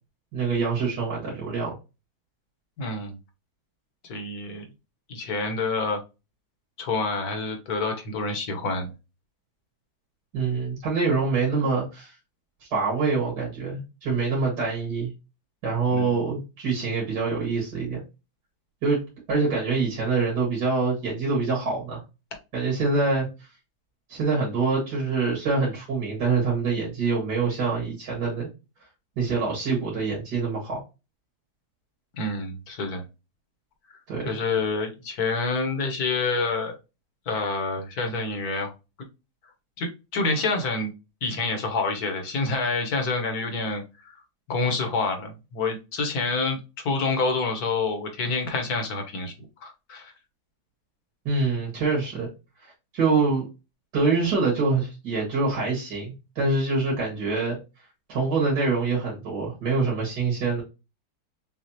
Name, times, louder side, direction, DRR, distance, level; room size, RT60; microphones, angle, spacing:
voice 1, 0.3-1.7 10.3-12.1 12.6-15.1 15.6-18.0 18.8-22.0 22.5-23.5 24.1-28.5 29.2-30.8 34.1-34.3 51.3-52.3 52.6-53.4 53.9-57.6 58.1-60.6, right 4 dB, 85° right, -4 dB, 2.3 m, -25 dB
voice 2, 2.8-3.2 4.1-4.6 5.1-6.0 6.8-8.9 15.9-16.2 32.1-33.0 33.9-34.0 34.2-36.8 37.3-38.7 39.8-40.9 41.2-44.2 44.5-46.6 46.8-49.3 49.6-50.1, left 3 dB, 65° left, 4 dB, 1.6 m, -27 dB
6.2 x 2.4 x 2.7 m, 0.27 s
omnidirectional pair, 1.7 m